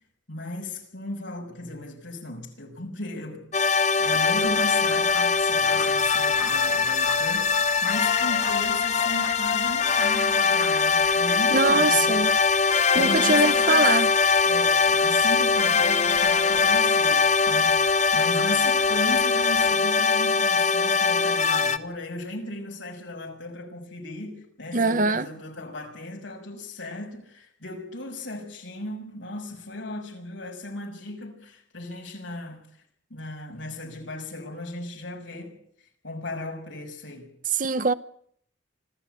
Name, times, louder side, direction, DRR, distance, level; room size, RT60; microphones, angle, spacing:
voice 1, 0.3-3.4 3.7-12.2 12.9-14.0 14.4-32.6 33.1-35.6 36.0-37.3, left 1 dB, 80° left, 6.1 m, -36 dB
sound 1, 3.5-21.8, left 5 dB, 35° left, 0.9 m, -22 dB
Fowl, 4.0-19.7, equal, ahead, 3.0 m, -44 dB
voice 2, 11.5-12.4 12.9-14.1 24.7-25.3 37.5-37.9, right 3 dB, 45° right, 0.9 m, -22 dB
25.5 x 15.0 x 9.2 m
head